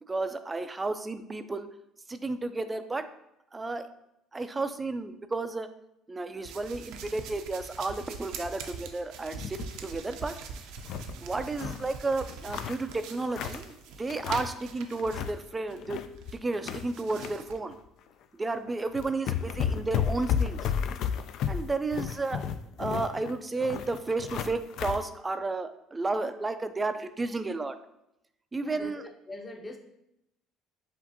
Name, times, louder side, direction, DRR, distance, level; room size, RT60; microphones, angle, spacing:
voice 1, 0.0-1.7 2.1-3.1 3.5-3.9 4.3-5.7 6.1-10.4 11.2-16.0 16.3-17.8 18.4-20.7 21.5-22.4 22.8-27.7 28.5-29.0, right 3 dB, 20° right, 10 dB, 0.4 m, -32 dB
sound 1, 6.4-15.8 16.2-17.6, right 5 dB, 75° right, 0.5 m, -44 dB
sound 2, 9.3-9.8 10.2-10.3 10.6-11.9 12.3-13.7 14.1-14.7 14.9-15.4 15.7-17.3 17.7-17.9 18.6-18.7 18.9-25.0, left 8 dB, 65° left, 0.3 m, -33 dB
voice 2, 28.6-29.8, left 2 dB, 15° left, 1 dB, 0.7 m, -42 dB
7.1 x 2.5 x 2.7 m, 0.82 s
supercardioid pair, 100°, 0 cm